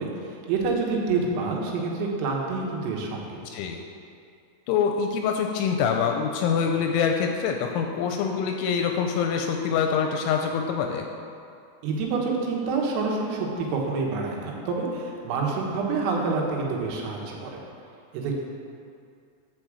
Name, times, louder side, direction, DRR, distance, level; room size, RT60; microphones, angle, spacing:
voice 1, 0.0-3.4 11.8-17.6 18.1-18.4, right 4 dB, 85° right, -1 dB, 3.9 m, -27 dB
voice 2, 3.4-3.8 4.7-11.1, left 6 dB, 85° left, 3 dB, 2.8 m, -25 dB
9.0 x 4.9 x 7.3 m, 2.4 s
omnidirectional pair, 5.8 m